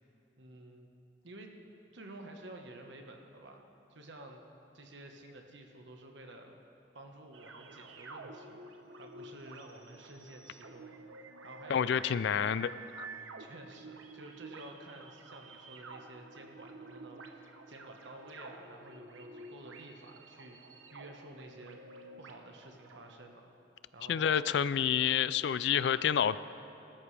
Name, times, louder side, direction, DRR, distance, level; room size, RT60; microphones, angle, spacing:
voice 1, 0.4-0.9 1.2-1.6 1.9-3.6 3.9-4.4 4.7-6.6 6.9-8.6 9.0-11.0 11.4-12.2 13.4-20.6 20.9-21.8 22.2-23.4 23.9-24.6, right 1 dB, 65° right, 3 dB, 1.3 m, -51 dB
sound 1, 7.3-23.1, right 3 dB, 80° right, 0.9 m, -50 dB
voice 2, 11.7-12.7 13.0-13.1 24.1-26.4, left 8 dB, 60° left, 16 dB, 0.3 m, -28 dB
19.0 x 13.5 x 3.4 m, 2.9 s
head